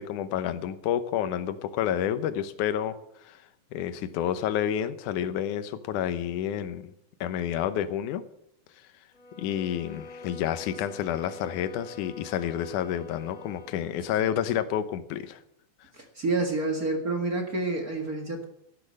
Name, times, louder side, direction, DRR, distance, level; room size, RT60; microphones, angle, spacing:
voice 1, 0.0-3.0 3.2-3.4 3.7-6.9 7.2-8.2 9.4-15.4, left 10 dB, 70° left, 11 dB, 2.1 m, -29 dB
sound 1, 9.1-13.9, left 3 dB, 45° left, 1.0 m, -45 dB
voice 2, 15.9-18.4, right 2 dB, 40° right, 2 dB, 1.3 m, -29 dB
12.5 x 12.0 x 6.4 m, 0.75 s
omnidirectional pair, 4.3 m